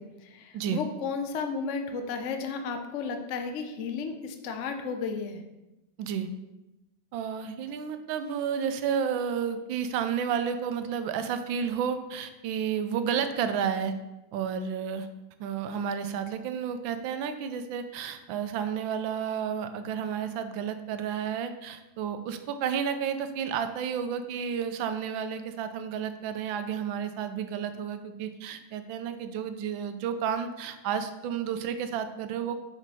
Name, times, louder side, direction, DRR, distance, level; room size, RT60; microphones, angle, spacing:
voice 1, 0.0-5.4, left 5 dB, 60° left, 6 dB, 0.7 m, -33 dB
voice 2, 7.1-13.9 14.3-15.1 15.4-32.6, right 7 dB, 85° right, 9 dB, 1.4 m, -31 dB
5.2 x 5.1 x 5.4 m, 1.0 s
omnidirectional pair, 2.1 m